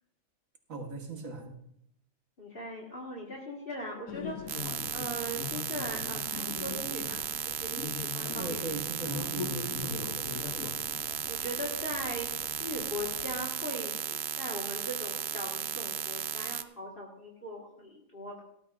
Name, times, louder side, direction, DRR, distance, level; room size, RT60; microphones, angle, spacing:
voice 1, 0.7-1.6 8.4-10.7, right 3 dB, 80° right, 3 dB, 1.9 m, -39 dB
voice 2, 2.4-4.6 4.9-8.7 11.2-18.4, equal, 40° left, -2 dB, 1.9 m, -40 dB
sound 1, 4.1-13.5, left 8 dB, 80° left, 1.1 m, -42 dB
sound 2, 4.5-16.6, right 10 dB, 60° right, 0.7 m, -35 dB
18.5 x 12.5 x 2.5 m, 0.76 s
omnidirectional pair, 1.4 m